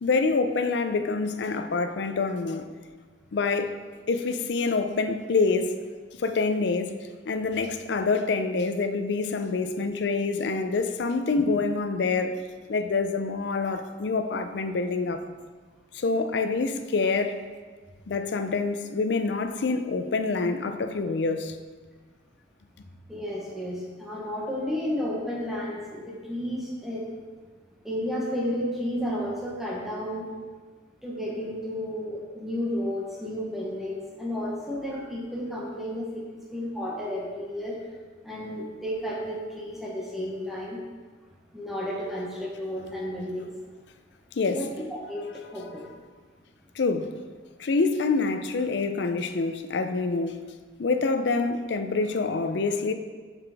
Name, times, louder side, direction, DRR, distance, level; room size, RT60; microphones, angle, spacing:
voice 1, 0.0-2.7 3.3-3.8 4.1-5.8 6.2-7.0 7.3-12.4 12.7-15.3 15.9-17.4 18.1-21.6 44.4-44.6 46.8-47.1 47.6-50.4 50.8-52.9, left 4 dB, 65° left, 0.5 m, -26 dB
voice 2, 23.1-27.1 27.8-30.2 31.0-37.8 38.2-40.8 41.5-43.5 44.5-45.2 45.5-45.7, equal, ahead, 1.0 m, -32 dB
7.1 x 5.8 x 3.5 m
head